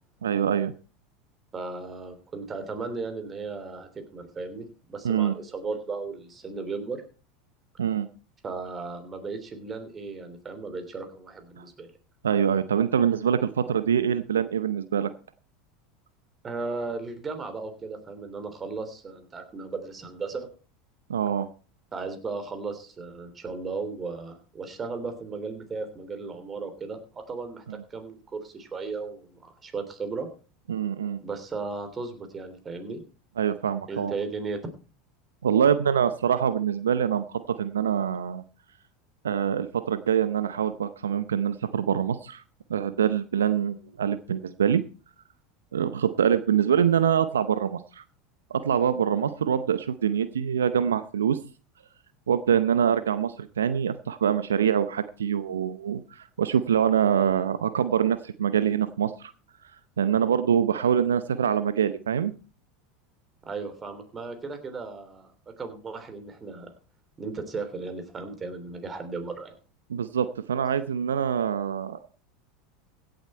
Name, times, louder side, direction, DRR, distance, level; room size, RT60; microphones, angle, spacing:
voice 1, 0.2-0.7 5.0-5.3 7.8-8.1 12.2-15.1 21.1-21.5 30.7-31.2 33.4-34.1 35.4-38.4 39.2-42.4 42.7-44.8 45.7-48.0 48.5-51.4 52.3-59.3 60.0-62.3 69.9-72.0, right 8 dB, 90° right, 13 dB, 0.6 m, -24 dB
voice 2, 1.5-7.0 8.4-11.9 16.4-20.5 21.9-27.6 27.9-30.3 31.2-33.0 33.9-34.6 63.4-65.3 65.6-66.7 67.2-69.6, right 4 dB, 25° right, 8 dB, 3.3 m, -35 dB
16.5 x 8.0 x 4.4 m, 0.36 s
hypercardioid pair, 90°, 0 cm